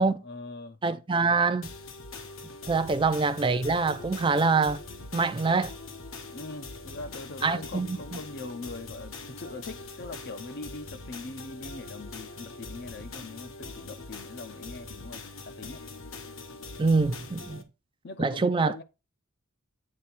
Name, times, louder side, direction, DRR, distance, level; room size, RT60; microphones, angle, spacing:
voice 1, 0.0-0.8 6.3-15.8 18.0-18.8, left 3 dB, 50° left, 0.7 m, -42 dB
voice 2, 0.8-1.7 2.7-4.8 5.1-5.7 7.4-8.0 16.8-17.6 18.2-18.7, right 4 dB, 25° right, 0.4 m, -25 dB
sound 1, 1.6-17.6, left 3 dB, 70° left, 1.2 m, -43 dB
8.7 x 3.4 x 5.8 m
head